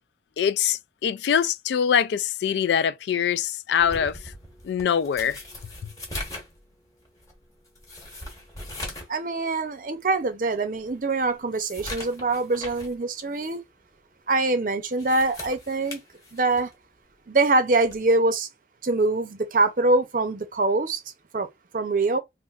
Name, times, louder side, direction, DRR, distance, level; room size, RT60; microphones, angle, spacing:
voice 1, 0.4-4.2 4.6-5.4, left 8 dB, 70° left, 0.3 m, -23 dB
sound 1, 3.8-9.2 9.5-9.6 10.2-10.3 10.7-13.0 13.3-13.6 14.8-16.8 17.8-18.1, left 1 dB, 20° left, 1.1 m, -40 dB
voice 2, 9.1-13.6 14.3-16.0 16.3-16.7 17.3-18.5 18.8-21.0 21.3-21.5 21.7-22.2, right 3 dB, 45° right, 0.6 m, -24 dB
3.4 x 2.5 x 2.4 m
head